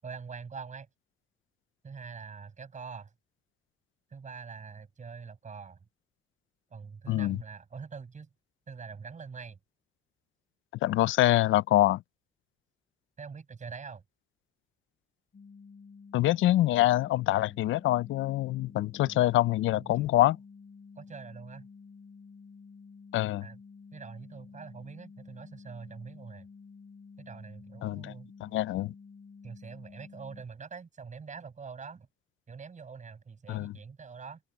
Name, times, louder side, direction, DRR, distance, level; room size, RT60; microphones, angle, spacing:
voice 1, 0.0-0.9 1.8-3.1 4.1-5.8 6.7-8.3 8.7-9.6 13.2-14.0 19.0-19.3 19.7-20.1 21.0-21.7 23.4-23.6 23.9-26.5 27.2-28.3 29.4-32.1 32.5-34.4, right 5 dB, 40° right, 7.1 m, -44 dB
voice 2, 7.1-7.4 10.8-12.0 16.1-20.4 23.1-23.5 27.8-28.1 28.4-28.9 33.5-33.7, left 15 dB, 80° left, 0.5 m, -25 dB
sound 1, 15.3-30.4, left 5 dB, 35° left, 2.3 m, -51 dB
cardioid pair, 90°, 20 cm